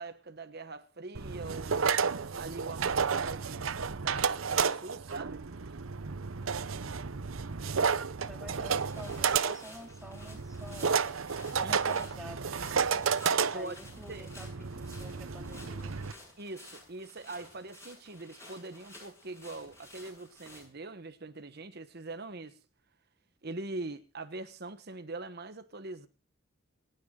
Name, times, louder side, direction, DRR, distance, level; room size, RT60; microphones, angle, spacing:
voice 1, 0.0-1.9 2.4-3.7 3.9-5.8 11.6-11.8 13.5-13.7 14.1-14.3 16.4-22.6 23.4-26.1, right 3 dB, 50° right, 1.3 m, -42 dB
sound 1, 1.1-16.1, right 6 dB, 90° right, 0.8 m, -32 dB
voice 2, 8.3-11.0 11.5-13.0 13.5-16.0, equal, ahead, 2.2 m, -49 dB
sound 2, 8.6-20.7, left 2 dB, 15° left, 7.4 m, -54 dB
28.5 x 9.7 x 3.8 m
head